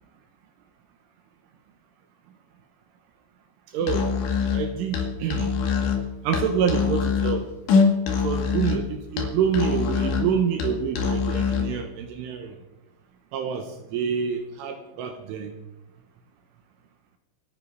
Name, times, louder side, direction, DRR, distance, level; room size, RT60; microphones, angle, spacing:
voice 1, 3.7-4.1 4.5-5.5 6.3-7.5 8.2-12.6 13.3-13.7 13.9-15.5, right 7 dB, 75° right, 5 dB, 3.5 m, -27 dB
Musical instrument, 3.8-11.8, left 5 dB, 65° left, 4.0 m, -24 dB
27.5 x 9.4 x 4.1 m, 0.97 s
omnidirectional pair, 6.0 m